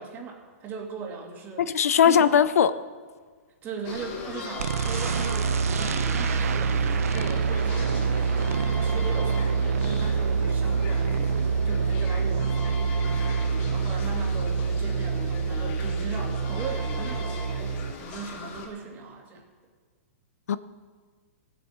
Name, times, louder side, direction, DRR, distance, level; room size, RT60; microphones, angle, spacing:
voice 1, 0.0-1.7 2.0-2.4 3.6-19.5, right 5 dB, 25° right, 1 dB, 2.2 m, -39 dB
voice 2, 1.6-2.7 20.5-20.6, left 8 dB, 80° left, 14 dB, 0.6 m, -19 dB
sound 1, 3.8-18.7, left 4 dB, 40° left, 2.3 m, -39 dB
sound 2, 4.6-17.9, right 5 dB, 75° right, 0.7 m, -26 dB
16.0 x 7.6 x 6.3 m, 1.5 s
hypercardioid pair, 145°, 8 cm